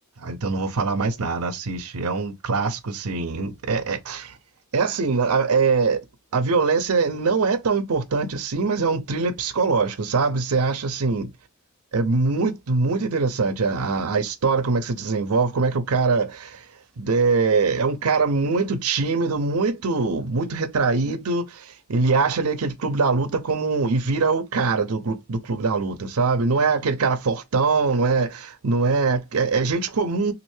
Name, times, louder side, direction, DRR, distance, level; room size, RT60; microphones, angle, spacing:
voice 1, 0.2-4.4 4.7-6.0 6.3-11.3 11.9-16.7 17.0-30.3, right 4 dB, 80° right, 0.6 m, -23 dB
3.1 x 2.5 x 3.1 m
head